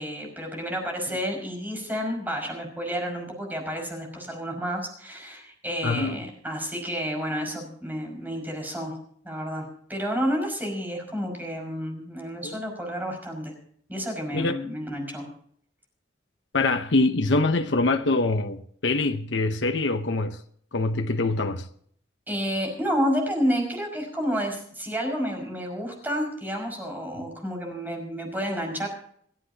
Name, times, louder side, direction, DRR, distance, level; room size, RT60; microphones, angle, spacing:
voice 1, 0.0-9.0 9.2-13.5 13.9-15.3 22.3-28.9, equal, 10° right, 5.5 m, -30 dB
voice 2, 5.8-6.2 12.4-12.6 14.3-14.6 16.5-20.4 20.7-21.7, left 2 dB, 80° left, 0.9 m, -24 dB
29.0 x 9.9 x 2.8 m
head